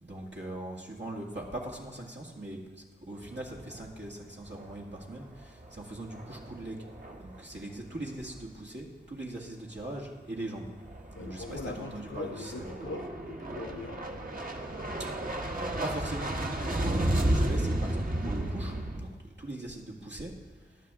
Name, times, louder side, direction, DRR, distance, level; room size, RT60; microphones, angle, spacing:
voice 1, 0.0-6.9 7.2-10.7 11.2-12.7 15.5-20.3, right 1 dB, 70° right, -2 dB, 2.0 m, -40 dB
sound 1, 3.2-4.1 4.5-4.8 5.3-7.7 7.9-8.4 10.5-19.0, right 1 dB, 45° right, 1.3 m, -33 dB
voice 2, 11.1-14.2, left 4 dB, 85° left, 8 dB, 0.7 m, -41 dB
15.0 x 11.0 x 3.7 m, 1.3 s
wide cardioid pair, 50°, 19 cm